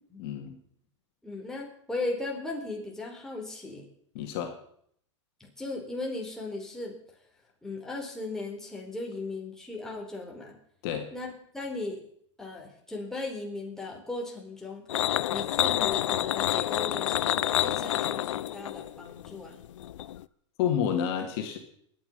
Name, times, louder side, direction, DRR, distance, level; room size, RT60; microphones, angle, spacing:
voice 1, 0.2-0.6 4.1-4.6 10.8-11.1 20.6-21.6, left 8 dB, 55° left, 4 dB, 2.6 m, -29 dB
voice 2, 1.2-3.9 5.4-6.9 7.6-10.6 11.1-12.0 12.4-14.9 15.3-19.6, left 2 dB, 5° left, -1 dB, 4.1 m, -37 dB
sound 1, 14.9-20.2, left 12 dB, 80° left, 0.6 m, -28 dB
23.0 x 9.2 x 5.5 m, 0.66 s
hypercardioid pair, 125°, 16 cm